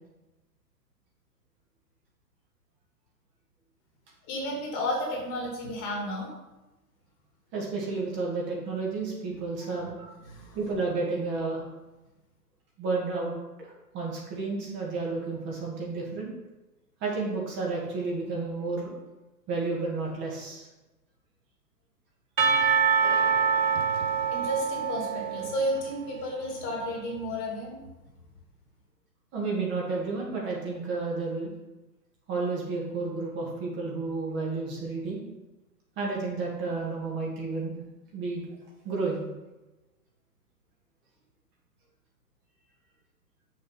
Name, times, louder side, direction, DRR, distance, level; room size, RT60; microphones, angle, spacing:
voice 1, 4.3-6.3 9.7-9.9 10.3-10.6 24.3-27.8, equal, 30° left, -1 dB, 2.2 m, -32 dB
voice 2, 7.5-10.1 10.5-11.6 12.8-13.3 13.6-16.3 17.0-18.9 19.5-20.7 29.3-31.5 32.3-35.2 36.0-37.8 38.1-38.6 38.8-39.2, right 3 dB, 25° right, -3 dB, 2.0 m, -31 dB
Percussion / Church bell, 22.4-26.3, right 6 dB, 80° right, 0.9 m, -25 dB
6.6 x 5.4 x 6.4 m, 1.1 s
figure-of-eight pair, 120°, 49 cm